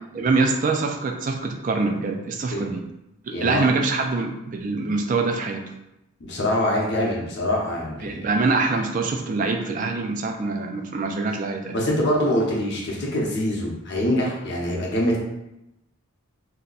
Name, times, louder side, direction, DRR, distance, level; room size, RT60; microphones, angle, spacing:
voice 1, 0.1-2.8 3.4-5.6 8.0-11.7, right 3 dB, 35° right, 3 dB, 0.3 m, -24 dB
voice 2, 3.3-3.6 6.2-8.3 11.7-15.2, left 1 dB, 50° left, -3 dB, 0.7 m, -24 dB
2.8 x 2.2 x 3.9 m, 0.89 s
head